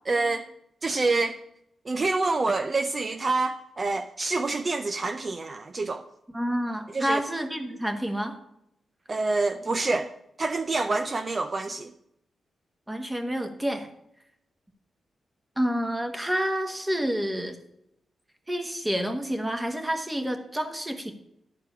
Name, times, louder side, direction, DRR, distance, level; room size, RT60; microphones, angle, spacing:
voice 1, 0.1-0.5 0.8-1.4 1.9-6.0 6.9-7.2 9.1-10.1 10.4-11.9, right 3 dB, 35° right, 0.5 m, -27 dB
voice 2, 6.3-8.4 12.9-13.9 15.6-17.6 18.5-21.1, equal, 10° right, 1.3 m, -29 dB
11.0 x 4.6 x 6.2 m
cardioid pair, 90°, 0 cm